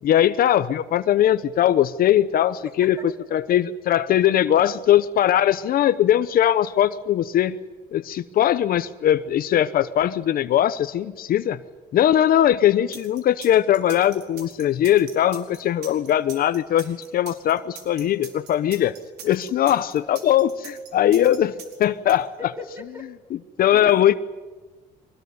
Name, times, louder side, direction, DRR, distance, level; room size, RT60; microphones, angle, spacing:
voice 1, 0.0-7.6 7.9-11.6 11.9-18.9 19.2-22.3 23.3-24.1, left 11 dB, 60° left, 13 dB, 0.9 m, -20 dB
sound 1, 12.9-22.1, right 7 dB, 80° right, 4.7 m, -42 dB
voice 2, 22.4-23.1 23.7-24.2, left 2 dB, 15° right, 3 dB, 4.3 m, -38 dB
23.5 x 20.0 x 9.5 m, 1.3 s
cardioid pair, 110°, 17 cm